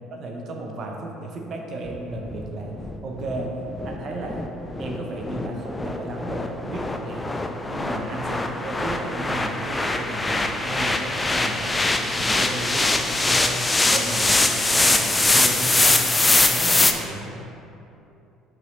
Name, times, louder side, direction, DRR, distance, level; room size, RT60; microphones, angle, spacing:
voice 1, 0.1-2.7 3.0-3.5 3.8-4.4 4.8-7.4 7.7-13.6 13.9-17.4, right 2 dB, 50° right, 1 dB, 0.8 m, -34 dB
sound 1, 1.9-16.9, left 2 dB, 20° left, 0.4 m, -23 dB
5.6 x 5.5 x 3.2 m, 2.9 s
hypercardioid pair, 60°, 0 cm